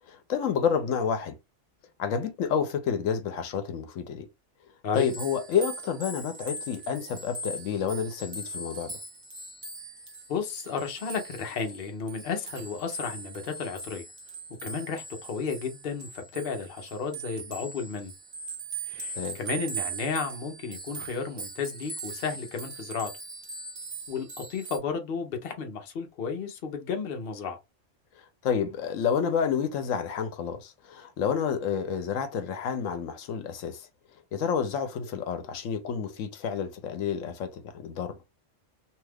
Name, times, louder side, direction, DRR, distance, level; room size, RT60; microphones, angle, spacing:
voice 1, 0.1-1.3 2.0-4.3 4.9-8.9 19.2-19.4 28.4-33.9 34.3-38.2, left 7 dB, 85° left, 1.0 m, -29 dB
sound 1, 4.9-24.8, right 3 dB, 45° right, 1.0 m, -40 dB
voice 2, 10.3-14.0 14.6-18.1 18.9-23.1 24.1-27.6, left 5 dB, 55° left, 0.9 m, -33 dB
2.8 x 2.3 x 3.3 m
omnidirectional pair, 1.3 m